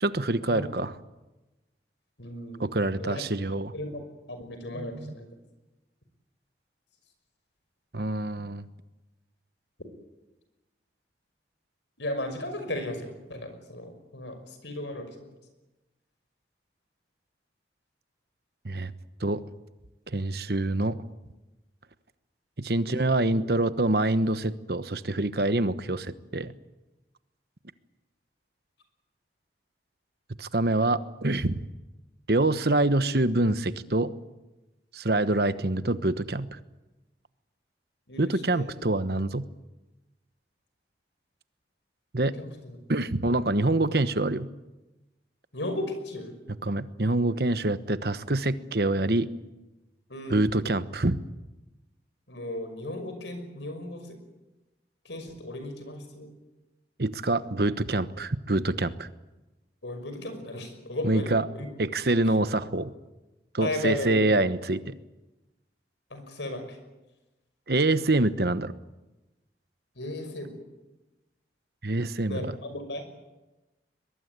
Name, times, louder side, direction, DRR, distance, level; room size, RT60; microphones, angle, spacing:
voice 1, 0.0-0.9 2.6-3.7 4.7-5.1 7.9-8.6 18.6-18.9 19.2-19.4 20.1-21.0 22.6-26.5 30.4-31.6 32.3-34.1 34.9-36.6 38.2-39.4 42.1-42.3 42.9-44.5 46.6-49.3 50.3-51.2 57.0-59.1 61.0-61.5 61.8-62.9 63.5-64.9 67.7-68.7 71.8-72.6, right 2 dB, 60° right, 13 dB, 1.1 m, -26 dB
voice 2, 2.2-3.2 3.7-4.0 4.3-5.3 12.0-15.3 22.8-23.2 38.1-38.8 42.4-42.8 45.5-46.3 50.1-50.5 52.3-54.2 55.0-56.3 59.8-61.7 63.6-64.4 66.1-66.8 70.0-70.5 72.3-73.3, left 1 dB, 90° left, 8 dB, 5.8 m, -35 dB
22.0 x 22.0 x 9.7 m, 1.1 s
head